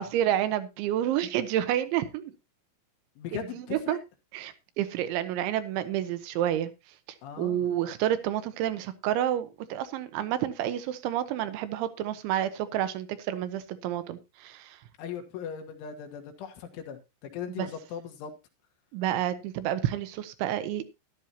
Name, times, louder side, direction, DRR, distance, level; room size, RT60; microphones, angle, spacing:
voice 1, 0.0-2.3 3.3-4.0 4.3-6.7 7.4-14.8 17.6-17.7 18.9-20.9, right 11 dB, 80° right, 11 dB, 3.2 m, -29 dB
voice 2, 3.2-4.0 7.2-7.7 15.0-18.3, left 8 dB, 80° left, 5 dB, 4.0 m, -39 dB
13.5 x 12.0 x 2.8 m, 0.25 s
omnidirectional pair, 5.5 m